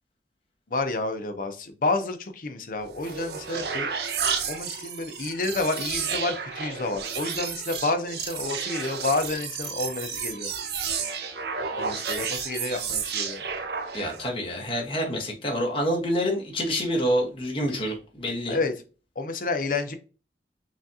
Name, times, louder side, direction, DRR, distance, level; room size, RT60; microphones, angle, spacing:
voice 1, 0.7-3.9 4.5-10.5 11.8-13.4 18.5-18.7 19.2-19.9, left 3 dB, 50° left, 0.6 m, -29 dB
sound 1, 2.8-14.3, right 6 dB, 65° right, 0.6 m, -32 dB
voice 2, 13.9-18.6, equal, 30° left, 1.2 m, -27 dB
6.1 x 2.4 x 2.7 m
head